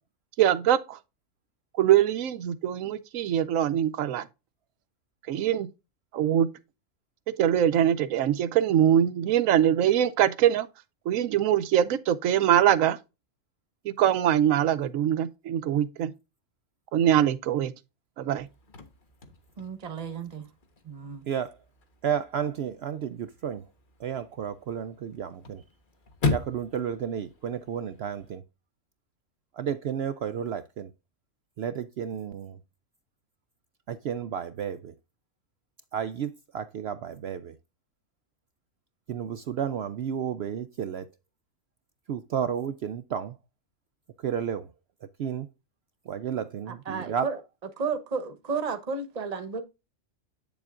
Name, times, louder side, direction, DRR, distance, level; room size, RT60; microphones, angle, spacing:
voice 1, 0.4-1.0 1.8-4.3 5.3-5.7 6.1-6.5 7.4-10.7 11.1-13.0 13.8-16.1 16.9-17.7 18.2-18.5, right 10 dB, 80° right, 1.1 m, -23 dB
Chirp tweet / Car / Slam, 18.4-28.4, left 3 dB, 40° left, 1.3 m, -38 dB
voice 2, 19.6-20.5 20.8-21.3 46.7-47.4 47.8-49.6, right 5 dB, 35° right, 1.0 m, -33 dB
voice 3, 21.3-21.6 22.0-23.7 24.0-25.6 26.3-28.4 29.5-30.9 31.6-32.6 33.9-34.9 35.9-37.6 39.1-41.1 42.1-43.4 44.2-44.7 45.2-45.5 46.1-47.3, right 8 dB, 65° right, 0.7 m, -32 dB
8.8 x 7.1 x 2.4 m
omnidirectional pair, 1.4 m